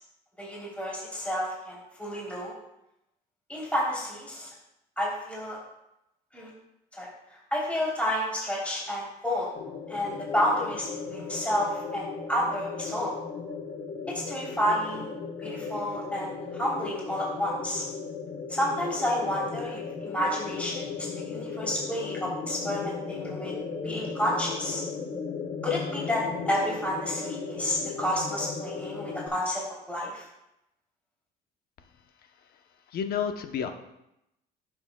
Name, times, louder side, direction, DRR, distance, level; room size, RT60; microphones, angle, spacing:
voice 1, 0.4-2.5 3.5-4.5 5.0-5.6 6.3-6.5 6.9-7.1 7.5-9.5 9.9-13.1 14.1-15.1 15.4-17.8 18.5-23.5 23.8-24.8 25.6-30.2, equal, 5° left, -5 dB, 3.1 m, -30 dB
sound 1, 9.5-29.3, left 5 dB, 50° left, 1.2 m, -36 dB
voice 2, 32.9-33.7, left 7 dB, 65° left, 7 dB, 0.8 m, -30 dB
11.5 x 7.1 x 2.2 m, 0.86 s
cardioid pair, 110°, 17 cm